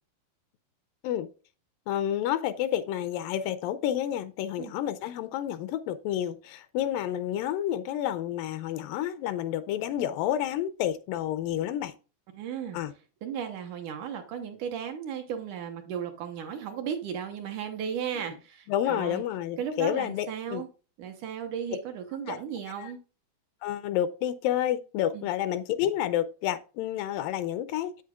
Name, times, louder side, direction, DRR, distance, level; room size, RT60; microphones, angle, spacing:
voice 1, 1.9-11.9 12.7-12.9 18.7-20.6 22.3-22.4 22.8-22.9 23.6-28.0, left 11 dB, 80° left, 2.2 m, -30 dB
voice 2, 12.3-12.8 13.2-19.2 19.6-20.7 21.0-23.0 25.1-25.3, right 8 dB, 70° right, 2.2 m, -35 dB
8.5 x 8.5 x 2.4 m
omnidirectional pair, 4.2 m